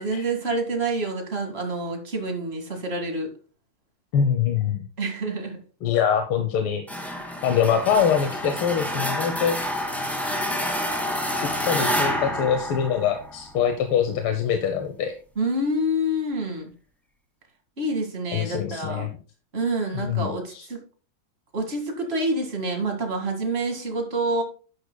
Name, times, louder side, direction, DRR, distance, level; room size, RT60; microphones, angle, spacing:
voice 1, 0.0-3.3 5.0-5.6 15.4-16.7 17.8-19.1 19.5-20.8 21.5-24.4, right 1 dB, 30° right, 3 dB, 2.2 m, -27 dB
voice 2, 4.1-4.8 5.8-6.8 7.4-9.6 11.6-15.1 18.3-19.1 19.9-20.7, left 7 dB, 85° left, 6 dB, 1.8 m, -24 dB
sound 1, 6.9-13.6, equal, ahead, 1.9 m, -28 dB
11.5 x 9.8 x 2.2 m, 0.37 s
omnidirectional pair, 2.3 m